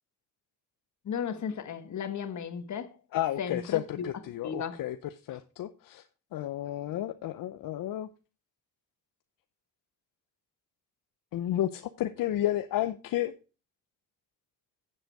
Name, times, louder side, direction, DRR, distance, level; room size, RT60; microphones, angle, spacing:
voice 1, 1.0-3.0 3.4-4.1 4.4-4.8, left 7 dB, 60° left, 1.5 m, -35 dB
voice 2, 3.1-5.0 5.3-6.0 6.3-8.1 11.3-13.3, left 13 dB, 75° left, 0.7 m, -31 dB
9.1 x 7.8 x 4.7 m
cardioid pair, 100°, 33 cm